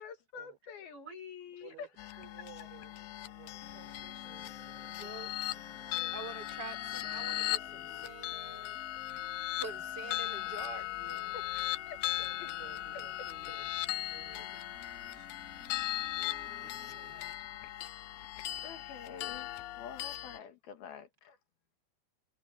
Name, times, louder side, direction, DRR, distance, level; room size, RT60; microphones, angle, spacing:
voice 1, 0.0-2.3 11.3-12.0 12.4-12.5 16.2-16.7 17.0-17.3 18.6-21.4, left 7 dB, 65° left, 3.3 m, -48 dB
sound 1, 2.0-20.4, left 15 dB, 90° left, 2.0 m, -38 dB
voice 2, 2.2-5.2 5.7-6.3 12.2-13.7 14.1-14.5 15.1-15.3 16.6-17.3, right 11 dB, 85° right, 6.8 m, -57 dB
sound 2, 3.6-17.3, left 2 dB, 25° left, 3.0 m, -56 dB
voice 3, 5.0-5.3 6.1-8.7 9.6-11.3, right 3 dB, 25° right, 4.9 m, -46 dB
omnidirectional pair, 5.1 m